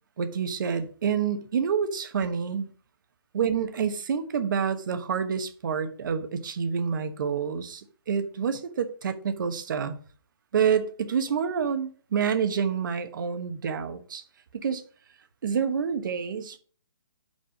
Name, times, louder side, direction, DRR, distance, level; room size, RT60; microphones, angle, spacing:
voice 1, 0.2-2.7 3.3-10.0 10.5-14.2 14.5-14.8 15.4-16.6, right 7 dB, 55° right, 1.1 m, -28 dB
5.4 x 5.3 x 5.2 m
hypercardioid pair, 155°, 13 cm